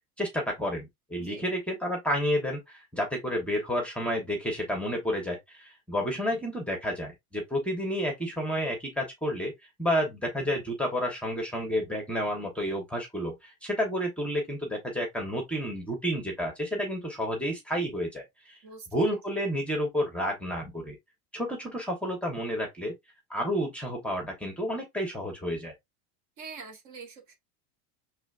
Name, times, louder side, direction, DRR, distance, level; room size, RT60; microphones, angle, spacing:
voice 1, 0.2-9.5 9.8-18.6 18.9-21.0 21.3-22.9 23.3-25.7, equal, 5° left, 1.0 m, -30 dB
voice 2, 18.6-19.0 26.4-27.4, right 4 dB, 45° right, 1.3 m, -44 dB
4.9 x 3.3 x 2.4 m
supercardioid pair, 140°, 42 cm